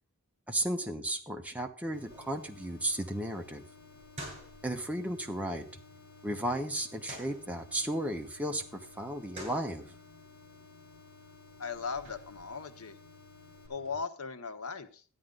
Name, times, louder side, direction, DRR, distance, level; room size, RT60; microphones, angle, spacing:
voice 1, 0.5-3.6 4.6-5.7 6.2-9.9, right 1 dB, 5° right, 3 dB, 1.1 m, -34 dB
sound 1, 1.9-13.7, left 8 dB, 45° left, 3.1 m, -57 dB
sound 2, 1.9-13.9, right 1 dB, 30° right, 7.7 m, -52 dB
voice 2, 11.6-13.0 13.7-15.0, left 5 dB, 90° left, 9 dB, 1.1 m, -38 dB
13.0 x 10.0 x 3.9 m, 0.39 s
head